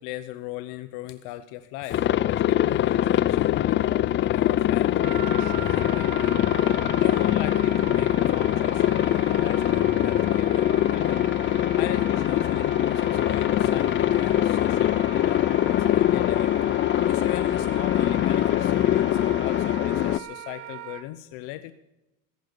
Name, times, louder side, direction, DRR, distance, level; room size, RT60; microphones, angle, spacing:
voice 1, 0.0-6.7 7.0-16.5 17.0-21.7, left 15 dB, 75° left, 13 dB, 0.9 m, -38 dB
Aircraft, 1.9-20.2, left 12 dB, 35° left, 0.4 m, -23 dB
Wind instrument woodwind instrument, 5.0-21.1, right 12 dB, 50° right, 1.6 m, -40 dB
15.0 x 10.5 x 6.7 m, 0.96 s
cardioid pair, 120°, 34 cm